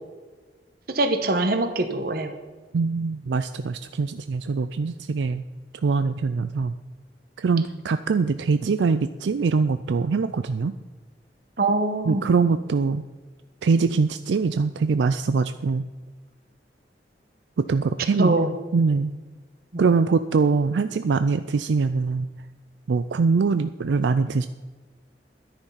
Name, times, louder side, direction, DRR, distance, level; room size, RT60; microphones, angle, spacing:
voice 1, 0.9-2.3 11.6-12.2 18.2-18.5 19.7-19.8, right 2 dB, 60° right, 7 dB, 1.1 m, -23 dB
voice 2, 2.7-5.4 5.8-6.7 7.4-10.7 12.1-13.0 13.6-15.8 17.6-19.1 19.8-22.3 22.9-24.5, right 4 dB, 85° right, 11 dB, 0.4 m, -23 dB
11.0 x 10.0 x 5.7 m, 1.3 s
head